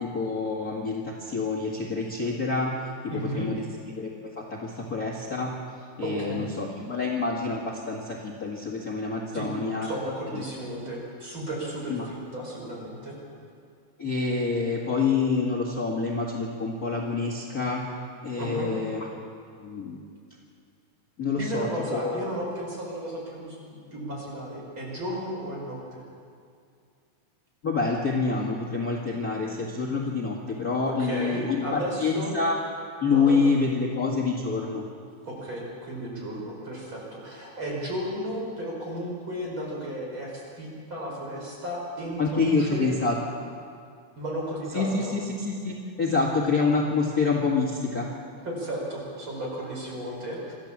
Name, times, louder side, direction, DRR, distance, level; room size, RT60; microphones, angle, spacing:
voice 1, 0.0-2.7 3.1-4.1 4.4-5.5 6.0-9.9 10.3-10.4 11.9-12.1 14.0-17.8 18.2-19.1 19.6-20.0 21.2-22.3 27.6-32.6 33.0-34.8 42.2-43.2 44.7-48.1, left 4 dB, 35° left, -3 dB, 1.9 m, -27 dB
voice 2, 3.1-3.5 6.0-6.5 9.3-9.5 9.8-13.2 18.4-18.7 21.3-26.0 31.0-32.3 33.1-33.4 35.3-42.9 44.2-45.1 48.4-50.5, equal, 40° right, -3 dB, 5.8 m, -34 dB
26.0 x 13.5 x 7.4 m, 2.3 s
omnidirectional pair, 3.6 m